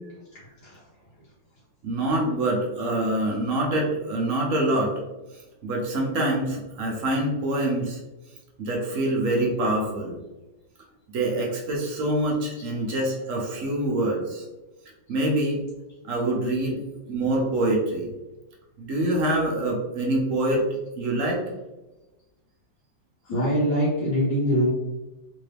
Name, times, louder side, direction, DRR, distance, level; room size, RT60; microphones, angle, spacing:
voice 1, 1.8-4.9 5.6-8.0 8.6-10.2 11.1-14.4 15.1-15.6 16.0-16.8 17.1-18.1 18.8-20.6 21.0-21.4, right 1 dB, 60° right, -2 dB, 0.9 m, -25 dB
voice 2, 23.2-24.7, equal, 80° left, -8 dB, 1.7 m, -23 dB
3.8 x 2.6 x 3.3 m, 1.1 s
omnidirectional pair, 2.0 m